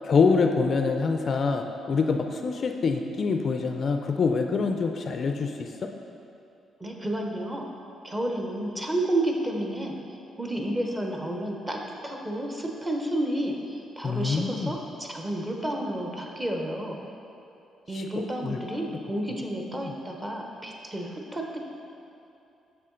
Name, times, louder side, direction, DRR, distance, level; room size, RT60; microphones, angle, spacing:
voice 1, 0.0-5.7 14.0-14.7 17.9-19.0 19.8-19.9, left 4 dB, 45° left, 5 dB, 0.4 m, -25 dB
voice 2, 6.8-7.6 8.0-9.9 10.4-17.0 17.9-21.6, right 1 dB, 15° right, 1 dB, 0.8 m, -31 dB
6.6 x 6.6 x 3.8 m, 2.7 s
cardioid pair, 125°, 0 cm